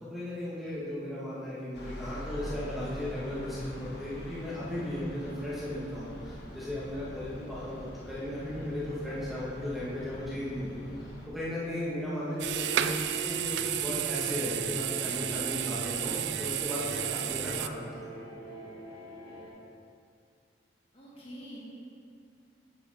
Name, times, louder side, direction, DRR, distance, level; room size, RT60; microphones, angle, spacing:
voice 1, 0.0-17.7 18.1-18.2, left 1 dB, ahead, -10 dB, 1.4 m, -36 dB
sound 1, 1.7-11.3, equal, 65° left, 1.2 m, -44 dB
sound 2, 11.6-19.5, equal, 35° right, 2.1 m, -43 dB
sound 3, 12.4-17.7, right 11 dB, 75° right, 0.3 m, -32 dB
voice 2, 20.9-21.6, equal, 30° left, -6 dB, 1.9 m, -45 dB
9.3 x 7.2 x 3.5 m, 2.4 s
head